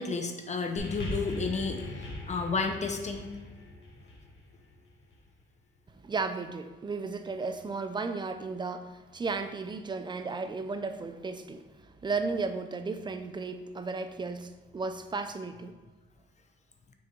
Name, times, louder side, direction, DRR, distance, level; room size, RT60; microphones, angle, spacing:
voice 1, 0.0-1.8 2.3-3.3, left 4 dB, 35° left, 5 dB, 0.7 m, -31 dB
sound 1, 0.8-5.3 6.1-6.2, left 1 dB, 70° left, 1.8 m, -40 dB
voice 2, 5.9-15.8, right 4 dB, 20° right, 8 dB, 0.5 m, -34 dB
6.3 x 3.5 x 4.5 m, 1.3 s
cardioid pair, 90°, 20 cm